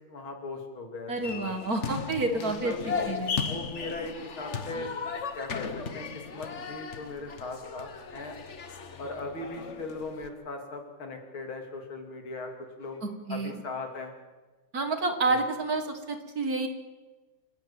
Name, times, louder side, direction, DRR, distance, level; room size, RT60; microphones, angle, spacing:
voice 1, 0.1-1.5 2.3-3.1 3.4-4.9 5.4-6.1 6.3-8.3 9.0-12.5 12.8-13.0 13.3-14.1 15.3-15.4, left 3 dB, 65° left, 4 dB, 3.7 m, -38 dB
voice 2, 1.1-2.7 3.1-3.3 13.0-13.5 14.7-16.7, right 3 dB, 45° right, 7 dB, 2.0 m, -29 dB
sound 1, 1.2-10.3, left 5 dB, 40° left, 1.2 m, -36 dB
28.5 x 12.5 x 8.8 m, 1.2 s
omnidirectional pair, 2.4 m